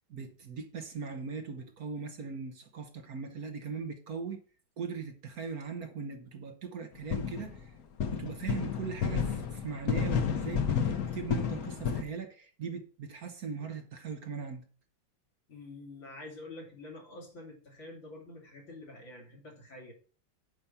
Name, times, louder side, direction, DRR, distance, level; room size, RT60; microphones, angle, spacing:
voice 1, 0.1-4.4 4.8-7.7 8.0-14.7, right 5 dB, 55° right, 1.3 m, -40 dB
sound 1, 7.1-7.6 8.0-12.0, left 7 dB, 55° left, 1.4 m, -31 dB
voice 2, 15.5-19.9, left 2 dB, 75° left, 3.9 m, -47 dB
9.9 x 5.2 x 5.8 m
omnidirectional pair, 2.1 m